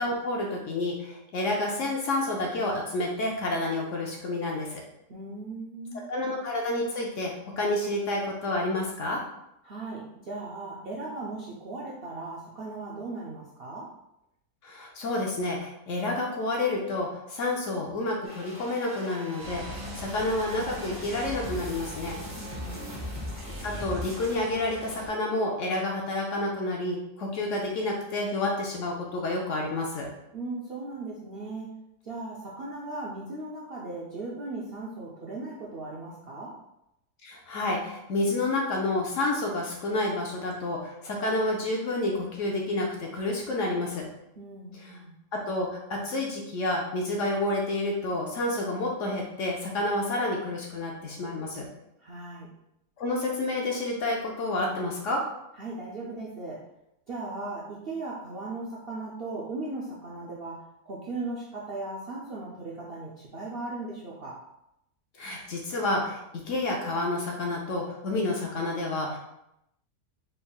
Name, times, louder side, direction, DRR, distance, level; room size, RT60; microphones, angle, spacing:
voice 1, 0.0-4.8 6.1-7.3 7.6-9.2 14.6-22.2 23.6-30.1 37.2-44.1 45.3-51.6 53.0-55.2 65.2-66.2 66.4-69.2, left 2 dB, 65° left, 0 dB, 0.8 m, -29 dB
voice 2, 5.1-6.1 9.6-13.9 22.5-23.3 30.3-31.7 32.0-36.5 44.3-45.2 52.0-52.5 55.6-56.6 57.1-60.6 60.9-64.3, right 2 dB, 60° right, -5 dB, 0.6 m, -37 dB
sound 1, 18.2-24.4, equal, 15° right, 0.5 m, -40 dB
sound 2, 19.4-25.1, equal, 90° right, 1.7 m, -42 dB
4.0 x 3.5 x 2.3 m, 0.83 s
omnidirectional pair, 1.7 m